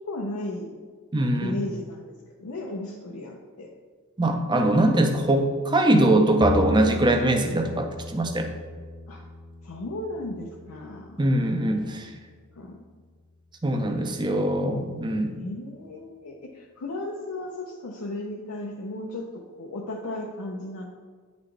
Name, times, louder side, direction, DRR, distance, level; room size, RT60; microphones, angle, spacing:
voice 1, 0.1-0.8 1.4-3.7 5.8-6.0 9.1-9.3 9.6-11.3 12.6-12.8 15.3-20.9, left 1 dB, 90° left, -1 dB, 0.6 m, -35 dB
voice 2, 1.1-1.6 4.2-8.5 11.2-12.1 13.6-15.4, right 1 dB, 20° right, 5 dB, 0.5 m, -22 dB
Bowed string instrument, 6.4-12.7, left 2 dB, 35° left, 0.7 m, -37 dB
9.4 x 4.1 x 3.3 m, 1.6 s
head